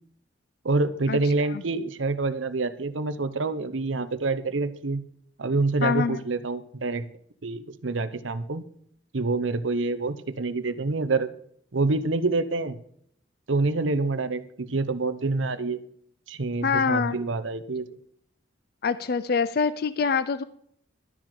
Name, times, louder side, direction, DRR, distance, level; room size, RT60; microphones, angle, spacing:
voice 1, 0.6-5.0 5.4-7.1 7.4-8.7 9.1-11.3 11.7-12.8 13.5-15.8 16.3-17.9, right 3 dB, 90° right, 12 dB, 0.9 m, -27 dB
voice 2, 5.8-6.2 16.6-17.2 18.8-20.4, left 5 dB, 55° left, 14 dB, 0.5 m, -24 dB
12.0 x 6.3 x 6.6 m, 0.65 s
head